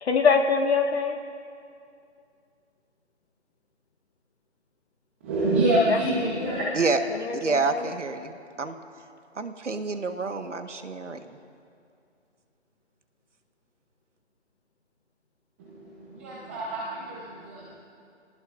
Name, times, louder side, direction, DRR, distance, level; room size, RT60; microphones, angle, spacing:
voice 1, 0.0-1.2 5.9-6.7 7.1-7.8, left 5 dB, 65° left, 2 dB, 1.6 m, -25 dB
voice 2, 5.2-6.7 15.6-17.8, right 1 dB, 10° right, -4 dB, 0.9 m, -27 dB
voice 3, 6.7-8.8 9.3-11.4, right 3 dB, 90° right, 7 dB, 1.4 m, -28 dB
26.5 x 19.0 x 2.5 m, 2.4 s
hypercardioid pair, 160°, 35 cm